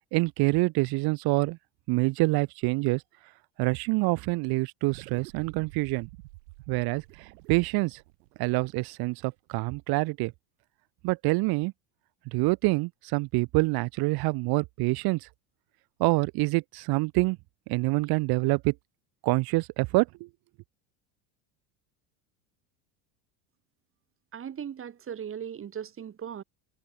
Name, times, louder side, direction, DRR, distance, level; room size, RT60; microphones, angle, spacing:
voice 1, 0.1-1.6 1.9-3.0 3.6-6.1 6.7-7.0 7.5-8.0 8.4-10.3 11.0-11.7 12.3-15.2 16.0-17.4 17.7-18.7 19.2-20.3, right 24 dB, 50° right, 0.6 m, -26 dB
sound 1, 4.9-9.5, right 24 dB, 80° right, 2.3 m, -49 dB
voice 2, 24.3-26.4, right 8 dB, 25° right, 1.1 m, -38 dB
supercardioid pair, 100°, 47 cm